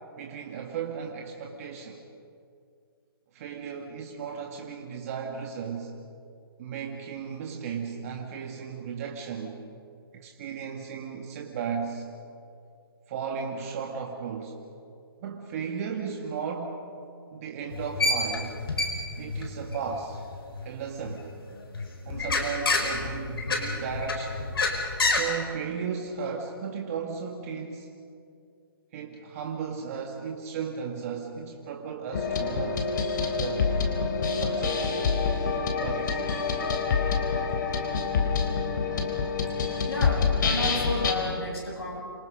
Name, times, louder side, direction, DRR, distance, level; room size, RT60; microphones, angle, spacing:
voice 1, 0.2-2.0 3.3-5.9 6.6-9.6 10.1-12.0 13.1-14.5 15.2-16.8 17.3-18.6 19.2-20.2 20.6-21.3 22.1-24.4 25.1-27.9 28.9-32.9 33.4-33.7 34.3-35.0 35.8-36.4, right 6 dB, 35° right, 1 dB, 2.2 m, -35 dB
sound 1, 17.7-21.1 21.6-25.2, left 3 dB, 70° left, 5.0 m, -28 dB
sound 2, 32.1-41.1, left 5 dB, 50° left, 3.8 m, -27 dB
voice 2, 39.9-42.0, left 2 dB, 85° left, -2 dB, 7.5 m, -32 dB
28.0 x 25.5 x 5.4 m, 2.4 s
hypercardioid pair, 150°, 13 cm